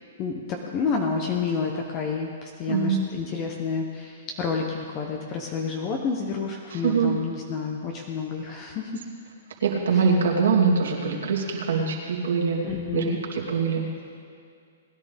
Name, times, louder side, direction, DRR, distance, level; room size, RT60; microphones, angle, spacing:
voice 1, 0.2-9.0 12.6-13.2, left 5 dB, 30° left, 1 dB, 1.1 m, -29 dB
voice 2, 2.7-3.0 6.7-7.2 9.6-12.6 12.9-13.8, right 5 dB, 80° right, -2 dB, 2.7 m, -23 dB
20.0 x 11.0 x 3.6 m, 2.3 s
hypercardioid pair, 145°, 0 cm